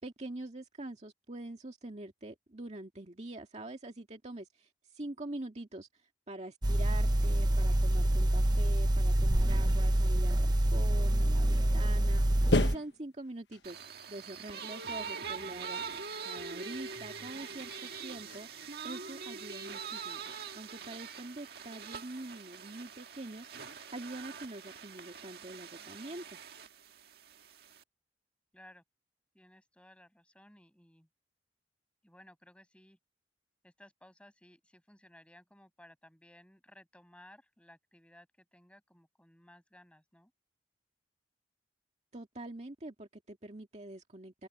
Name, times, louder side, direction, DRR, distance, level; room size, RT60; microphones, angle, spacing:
voice 1, 0.0-5.9 6.3-13.8 14.1-15.8 16.2-20.2 20.5-26.4 42.1-44.5, right 1 dB, 40° right, 2.0 m, -45 dB
sound 1, 6.6-12.7, right 1 dB, 25° right, 0.8 m, -26 dB
sound 2, 12.5-13.7 15.4-15.6 15.9-17.0 17.4-18.8, left 2 dB, 75° left, 1.3 m, -36 dB
sound 3, 13.6-27.8, right 6 dB, 60° right, 1.7 m, -44 dB
voice 2, 28.5-28.8 29.3-31.1 32.0-33.0 33.6-40.3, left 1 dB, 5° left, 7.6 m, -59 dB
head